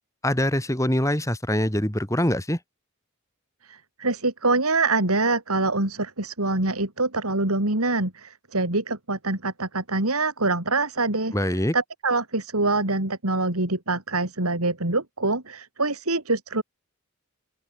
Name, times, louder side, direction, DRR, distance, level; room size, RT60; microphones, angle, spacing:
voice 1, 0.2-2.6 11.3-11.7, left 1 dB, 15° left, 3.4 m, -24 dB
voice 2, 3.6-11.3 11.7-16.6, right 3 dB, 85° right, 4.3 m, -25 dB
open air
head